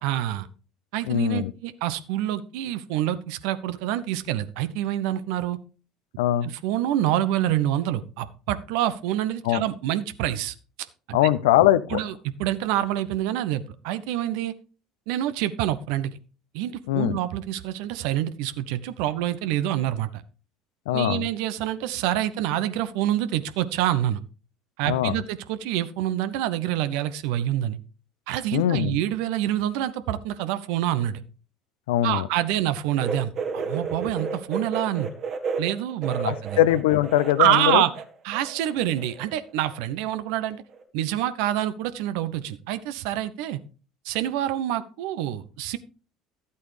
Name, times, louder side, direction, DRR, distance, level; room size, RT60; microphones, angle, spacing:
voice 1, 0.0-0.5 0.9-5.6 6.4-10.5 11.1-11.2 11.9-12.1 12.4-14.5 15.1-16.1 16.5-20.2 20.9-24.2 24.8-27.8 28.3-31.2 32.0-35.1 35.6-36.6 37.4-37.9 38.2-40.6 40.9-43.6 44.0-45.8, right 12 dB, 65° right, 13 dB, 0.8 m, -26 dB
voice 2, 1.1-1.5 6.2-6.5 9.4-9.6 11.1-12.0 16.9-17.2 20.9-21.3 24.9-25.2 28.5-28.9 31.9-32.3 36.2-37.8, left 12 dB, 70° left, 15 dB, 0.6 m, -21 dB
sound 1, 33.0-38.1 38.3-39.3 39.6-39.7 40.7-40.8, right 5 dB, 50° right, 1.8 m, -32 dB
12.5 x 8.4 x 3.3 m, 0.36 s
figure-of-eight pair, 65°, 0 cm